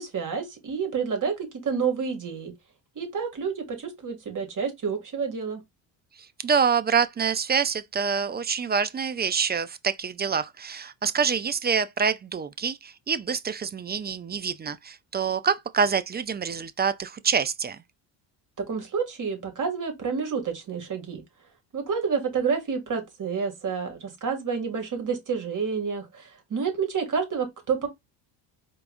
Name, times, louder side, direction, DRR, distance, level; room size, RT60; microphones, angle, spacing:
voice 1, 0.0-2.5 3.0-5.6 18.6-21.2 21.7-27.9, right 6 dB, 40° right, 2.4 m, -29 dB
voice 2, 6.4-17.8, right 6 dB, 20° right, 0.4 m, -26 dB
4.5 x 3.5 x 2.5 m
supercardioid pair, 75°, 48 cm